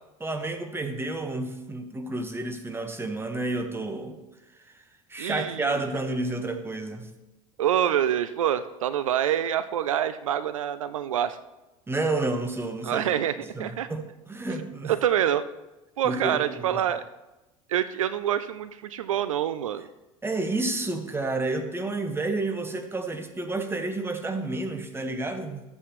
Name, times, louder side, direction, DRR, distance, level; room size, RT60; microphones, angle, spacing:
voice 1, 0.2-4.2 4.7-4.8 5.1-7.1 11.9-13.1 13.5-14.9 16.0-16.8 20.2-25.6, right 2 dB, 15° right, 6 dB, 1.3 m, -30 dB
voice 2, 5.2-5.7 7.6-11.4 12.8-13.9 14.9-15.5 16.0-17.0 17.7-19.9, right 10 dB, 80° right, 13 dB, 0.4 m, -26 dB
13.5 x 8.1 x 3.1 m, 1.0 s
figure-of-eight pair, 70°, 17 cm